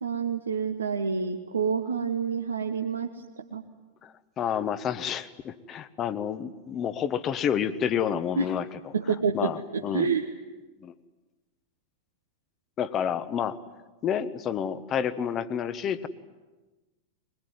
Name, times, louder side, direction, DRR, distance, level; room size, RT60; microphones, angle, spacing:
voice 1, 0.0-3.2 3.5-3.6 8.4-8.5 8.9-10.3, right 5 dB, 70° right, 3 dB, 1.3 m, -28 dB
voice 2, 4.0-8.9 9.3-10.1 10.8-10.9 12.8-13.6 14.0-16.1, left 8 dB, 30° left, 13 dB, 1.2 m, -29 dB
22.5 x 21.5 x 9.5 m, 1.2 s
figure-of-eight pair, 90°, 0 cm